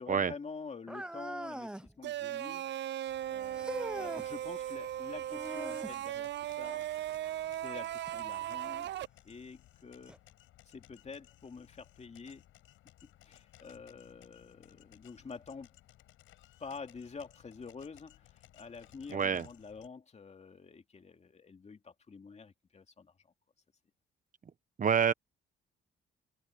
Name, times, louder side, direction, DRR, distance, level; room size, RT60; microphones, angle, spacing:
voice 1, 0.0-2.6 3.3-6.9 7.6-8.9 9.2-10.2 10.7-12.4 13.2-15.7 16.6-23.1, left 5 dB, 35° left, 2.5 m, -48 dB
sound 1, 0.9-1.9 3.6-4.3 5.3-6.0 8.1-8.2 9.0-9.1 10.1-10.2, right 1 dB, 5° right, 0.5 m, -41 dB
sound 2, 2.0-9.1, right 12 dB, 60° right, 0.5 m, -38 dB
sound 3, 3.1-19.9, left 14 dB, 90° left, 6.3 m, -61 dB
voice 2, 19.1-19.5 24.8-25.1, right 7 dB, 40° right, 1.2 m, -27 dB
cardioid pair, 90°, 20 cm